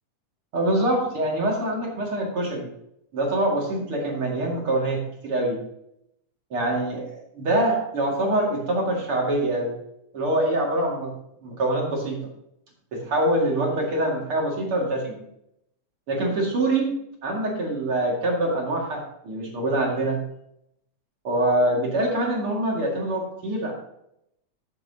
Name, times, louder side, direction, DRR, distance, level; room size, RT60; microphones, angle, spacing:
voice 1, 0.5-2.7 3.1-5.6 6.5-9.7 10.1-11.1 11.4-12.2 12.9-15.2 16.1-16.9 17.2-20.2 21.2-23.7, right 1 dB, 45° right, -2 dB, 2.9 m, -24 dB
13.0 x 7.7 x 2.9 m, 0.78 s
omnidirectional pair, 3.7 m